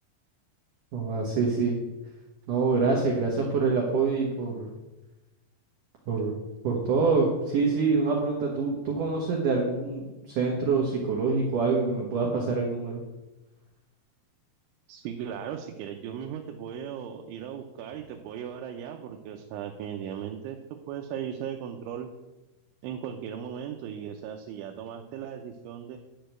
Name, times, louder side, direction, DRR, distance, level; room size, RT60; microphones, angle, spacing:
voice 1, 0.9-1.8 2.5-4.7 6.1-6.4 6.6-13.0, right 4 dB, 65° right, -1 dB, 2.1 m, -26 dB
voice 2, 14.9-22.1 22.8-26.0, right 9 dB, 80° right, 3 dB, 3.0 m, -37 dB
11.0 x 5.0 x 7.5 m, 1.1 s
omnidirectional pair, 5.6 m